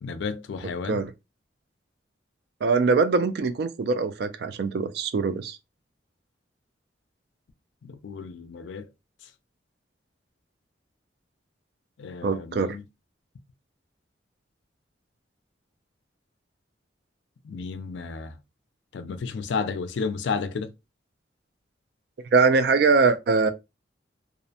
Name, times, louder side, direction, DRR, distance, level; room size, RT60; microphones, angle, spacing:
voice 1, 0.0-1.0 7.8-8.9 9.2-9.3 12.0-12.8 17.4-18.4 18.9-20.7, left 5 dB, 75° left, 0.4 m, -32 dB
voice 2, 2.6-5.6 12.2-12.8 22.3-23.5, right 4 dB, 60° right, 0.3 m, -22 dB
2.4 x 2.0 x 2.7 m
head